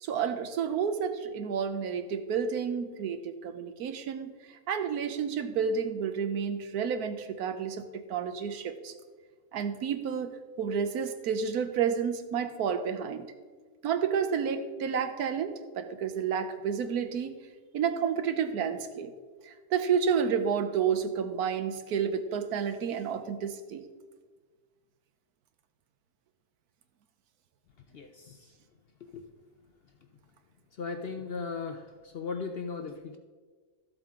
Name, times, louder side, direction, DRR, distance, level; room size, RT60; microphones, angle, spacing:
voice 1, 0.0-4.3 4.7-8.9 9.5-13.3 13.8-17.4 17.7-19.1 19.4-23.8, right 7 dB, 85° right, 9 dB, 1.3 m, -30 dB
voice 2, 30.8-31.8 32.1-33.2, left 5 dB, 55° left, 6 dB, 0.7 m, -36 dB
12.5 x 7.8 x 3.7 m, 1.5 s
omnidirectional pair, 1.6 m